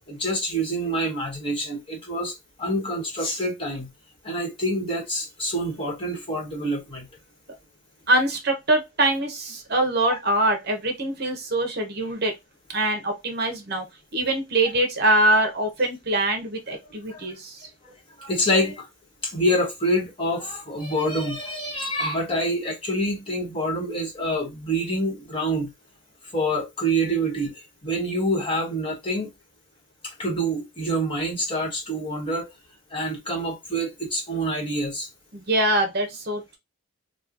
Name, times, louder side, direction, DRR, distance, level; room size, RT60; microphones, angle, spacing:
voice 1, 0.1-3.9 4.2-7.1 10.1-10.2 16.7-16.8 17.1-17.3 17.8-17.9 18.2-18.9 19.2-25.7 26.3-29.3 30.0-32.5 32.9-35.1, equal, 25° left, 1.3 m, -26 dB
voice 2, 8.1-12.3 12.7-13.8 14.1-17.6 35.3-36.6, right 1 dB, 50° right, 0.9 m, -23 dB
3.1 x 2.3 x 3.8 m
head